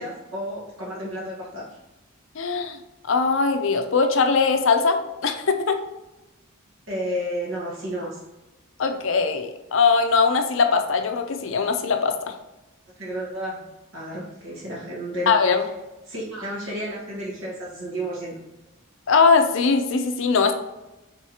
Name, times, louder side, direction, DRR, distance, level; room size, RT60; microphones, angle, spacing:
voice 1, 0.0-1.6 6.9-8.2 13.0-13.6 13.9-15.3 16.1-18.4, equal, 75° right, -5 dB, 1.5 m, -31 dB
voice 2, 2.4-2.8 3.1-5.8 8.8-12.3 15.3-15.6 19.1-20.5, left 5 dB, 65° left, 6 dB, 0.5 m, -21 dB
4.8 x 3.6 x 2.9 m, 1.0 s
head